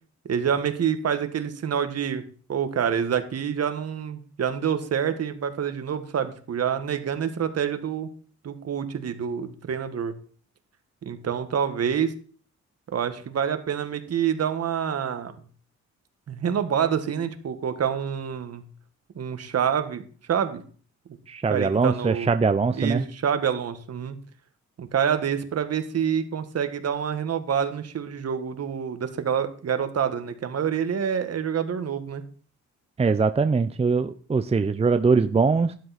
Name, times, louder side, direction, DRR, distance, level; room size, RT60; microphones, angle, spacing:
voice 1, 0.2-2.2 2.5-8.1 8.4-10.1 11.0-12.1 12.9-15.3 16.3-18.6 19.1-20.6 21.5-22.3 22.7-24.2 24.8-32.2, right 8 dB, 55° right, 9 dB, 1.6 m, -27 dB
voice 2, 21.3-23.0 33.0-35.7, right 4 dB, 20° right, 10 dB, 0.6 m, -22 dB
12.5 x 10.5 x 4.2 m, 0.43 s
cardioid pair, 90°, 29 cm